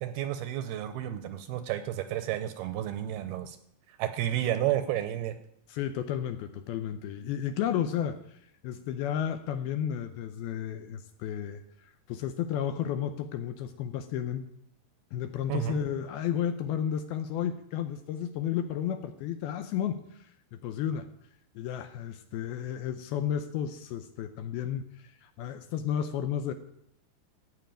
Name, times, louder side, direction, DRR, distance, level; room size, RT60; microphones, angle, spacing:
voice 1, 0.0-3.6 3.9-5.4 15.5-15.8, right 12 dB, 80° right, 10 dB, 2.4 m, -31 dB
voice 2, 5.7-14.5 15.1-21.1 21.6-26.5, left 9 dB, 80° left, 10 dB, 2.3 m, -33 dB
14.5 x 5.6 x 9.0 m, 0.74 s
omnidirectional pair, 4.9 m